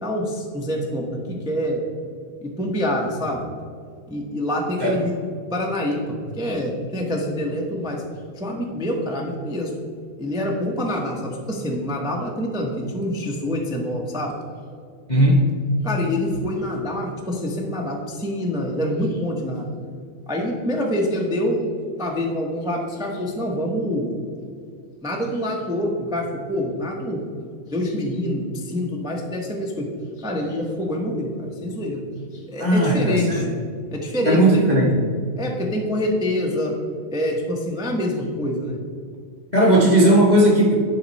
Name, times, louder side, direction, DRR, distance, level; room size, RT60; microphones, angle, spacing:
voice 1, 0.0-1.8 2.4-3.4 4.1-5.2 5.5-8.0 8.4-9.7 10.2-14.3 15.8-19.7 20.3-21.7 22.0-24.1 25.0-27.2 27.7-29.9 30.2-32.1 32.3-33.5 33.9-34.8 35.4-36.8 37.1-38.8, left 1 dB, 5° right, -1 dB, 0.4 m, -26 dB
voice 2, 15.1-15.4 32.6-33.4 34.3-34.9 39.5-40.8, right 1 dB, 40° left, -3 dB, 0.6 m, -16 dB
10.5 x 5.2 x 4.1 m, 2.2 s
omnidirectional pair, 2.2 m